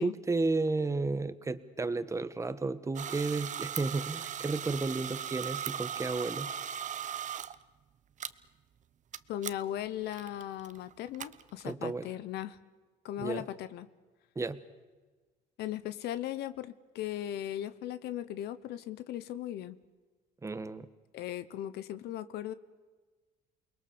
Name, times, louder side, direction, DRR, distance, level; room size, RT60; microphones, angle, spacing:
voice 1, 0.0-6.5 11.6-12.1 13.2-13.4 14.3-14.6 20.4-20.9, right 3 dB, 15° right, 13 dB, 1.4 m, -32 dB
sound 1, 3.0-7.6 8.2-8.3 9.1-9.2 9.4-9.5 10.1-11.7, right 9 dB, 45° right, 0.9 m, -38 dB
voice 2, 9.3-12.6 13.0-13.9 15.6-19.8 21.1-22.5, left 12 dB, 75° left, 13 dB, 1.0 m, -38 dB
29.0 x 21.5 x 7.0 m, 1.3 s
cardioid pair, 110°, 17 cm